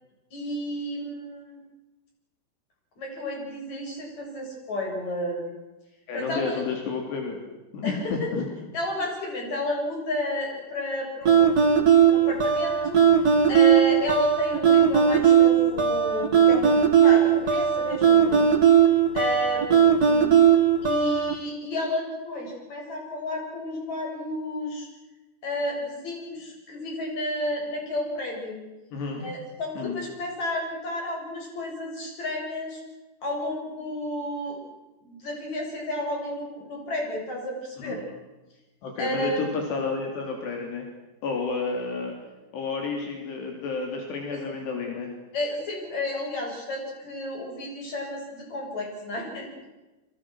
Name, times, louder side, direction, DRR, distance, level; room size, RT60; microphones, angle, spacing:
voice 1, 0.3-1.6 3.0-5.5 6.1-6.6 7.8-8.3 8.7-13.0 13.5-18.4 19.1-20.4 20.8-24.9 25.4-28.6 29.2-32.8 33.2-34.6 35.0-38.0 39.0-39.4 45.3-49.5, left 1 dB, 40° left, 1 dB, 8.6 m, -32 dB
voice 2, 6.1-7.4 7.7-8.4 28.9-29.3 29.8-30.0 37.8-38.0 38.8-40.9 41.2-42.2 42.5-45.1, left 4 dB, 80° left, 2 dB, 5.4 m, -30 dB
sound 1, 11.3-21.3, right 8 dB, 35° right, 1.7 m, -18 dB
28.0 x 24.0 x 6.3 m, 1.1 s
omnidirectional pair, 4.8 m